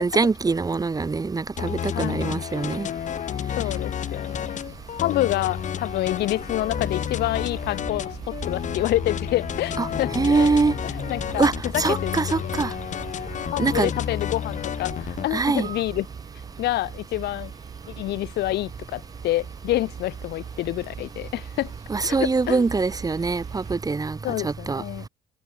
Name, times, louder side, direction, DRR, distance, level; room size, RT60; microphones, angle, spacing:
voice 1, 0.0-2.9 9.8-9.9 10.1-10.7 11.4-12.7 13.6-13.9 15.3-15.7 21.9-24.2 24.4-24.8, right 4 dB, 20° right, 2.1 m, -23 dB
sound 1, 1.6-15.3, left 9 dB, 45° left, 1.2 m, -31 dB
voice 2, 1.9-2.4 3.6-4.6 5.0-12.2 13.5-16.1 16.6-17.5 18.0-21.7 22.0-22.7 24.2-25.1, left 16 dB, 75° left, 5.3 m, -28 dB
sound 2, 4.1-23.8, right 7 dB, 40° right, 4.7 m, -41 dB
cardioid pair, 110°, 17 cm